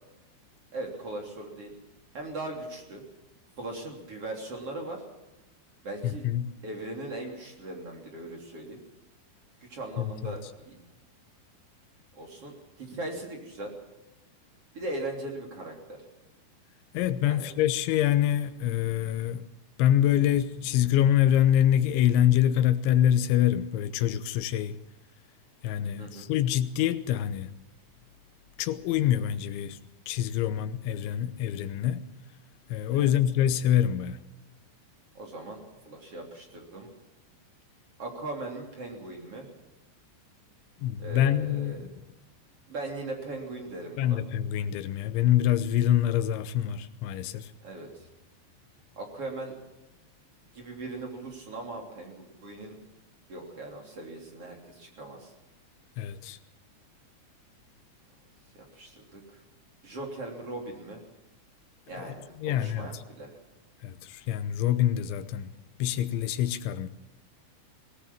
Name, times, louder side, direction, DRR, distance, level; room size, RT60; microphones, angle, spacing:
voice 1, 0.7-1.7 2.1-3.0 3.6-5.0 5.8-6.2 6.6-8.8 9.6-10.8 12.1-13.7 14.7-16.0 17.2-17.5 26.0-26.3 32.9-33.1 35.1-35.6 35.9-36.9 38.0-39.5 41.0-41.8 42.7-44.2 47.6-48.1 49.0-49.5 50.5-52.8 53.3-55.3 58.5-59.4 59.8-61.0 61.9-63.3, right 2 dB, 35° right, 3.8 m, -39 dB
voice 2, 6.0-6.5 10.0-10.4 16.9-19.5 19.8-24.8 25.6-27.5 28.6-29.8 30.1-32.0 32.7-34.2 40.8-41.9 44.0-47.5 56.0-56.4 61.9-62.9 63.8-65.5 65.8-66.9, left 11 dB, 90° left, 3.3 m, -25 dB
20.5 x 18.5 x 7.3 m
omnidirectional pair, 5.2 m